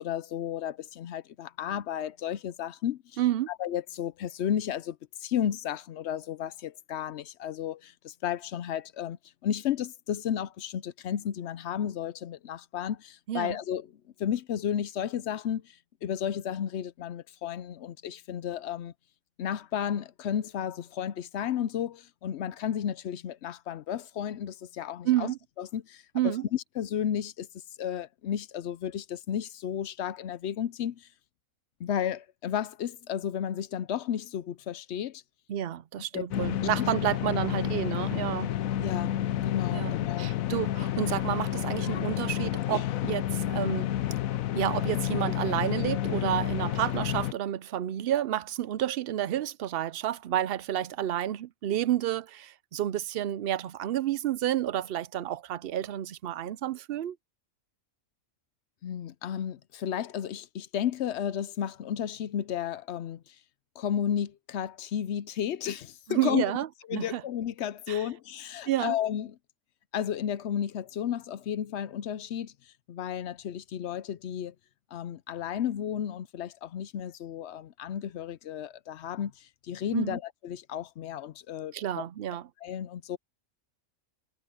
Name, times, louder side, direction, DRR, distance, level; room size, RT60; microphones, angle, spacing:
voice 1, 0.0-3.2 3.5-9.2 9.4-13.9 14.2-18.9 19.4-25.3 25.6-27.5 27.8-31.1 31.8-35.2 36.1-36.3 36.8-36.9 38.8-40.3 58.8-63.3 63.8-66.5 66.9-69.4 69.9-72.5 72.9-74.5 74.9-82.0 82.6-83.2, left 9 dB, 65° left, 0.8 m, -33 dB
voice 2, 3.2-3.5 13.3-13.6 25.0-25.4 26.1-26.5 35.5-38.5 39.7-43.9 44.5-57.2 66.1-67.2 67.9-68.0 68.7-69.0 79.9-80.2 81.7-82.5, right 12 dB, 60° right, 0.7 m, -30 dB
sound 1, 36.3-47.3, left 12 dB, 85° left, 1.1 m, -30 dB
omnidirectional pair, 1.4 m